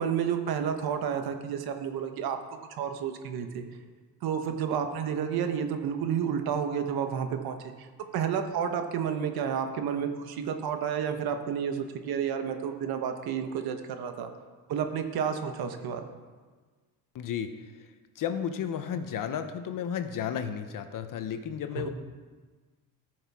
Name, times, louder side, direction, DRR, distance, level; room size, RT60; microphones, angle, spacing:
voice 1, 0.0-2.4 2.8-3.6 4.2-7.9 8.1-14.3 14.7-16.0 21.8-21.9, right 7 dB, 85° right, 7 dB, 1.2 m, -30 dB
voice 2, 17.1-17.5 18.2-21.9, left 8 dB, 60° left, 9 dB, 0.9 m, -33 dB
14.0 x 6.5 x 4.8 m, 1.4 s
cardioid pair, 130°, 36 cm